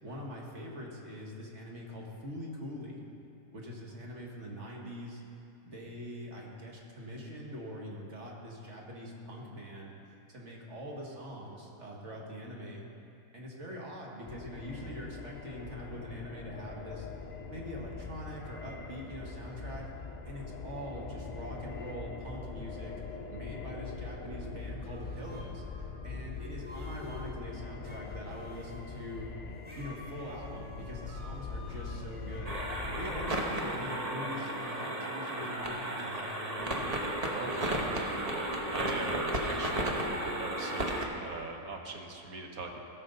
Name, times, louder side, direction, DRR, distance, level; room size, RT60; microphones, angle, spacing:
voice 1, 0.0-3.0 3.5-5.2 5.7-9.9 10.3-12.9 13.3-17.1 17.5-19.9 20.3-22.9 23.3-25.6 26.0-29.3 29.7-32.6 33.0-36.9, equal, 45° right, -2 dB, 2.0 m, -43 dB
sound 1, 14.3-33.3, left 4 dB, 55° left, 0.5 m, -42 dB
sound 2, 24.9-25.5 26.3-27.3 27.8-28.8 29.6-32.5, equal, 5° right, 1.8 m, -51 dB
sound 3, 32.4-41.0, right 1 dB, 30° right, 1.0 m, -34 dB
voice 2, 37.3-42.8, right 3 dB, 65° right, 2 dB, 1.6 m, -41 dB
17.5 x 6.6 x 5.4 m, 2.7 s
omnidirectional pair, 1.7 m